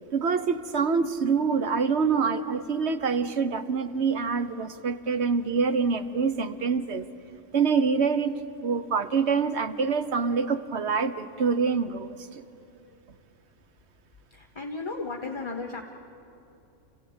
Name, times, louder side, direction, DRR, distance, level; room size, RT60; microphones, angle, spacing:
voice 1, 0.1-7.1 7.5-12.4, right 5 dB, 55° right, 11 dB, 1.2 m, -26 dB
voice 2, 14.3-15.8, left 3 dB, 20° left, 3 dB, 1.0 m, -34 dB
27.5 x 16.0 x 8.8 m, 2.9 s
omnidirectional pair, 1.4 m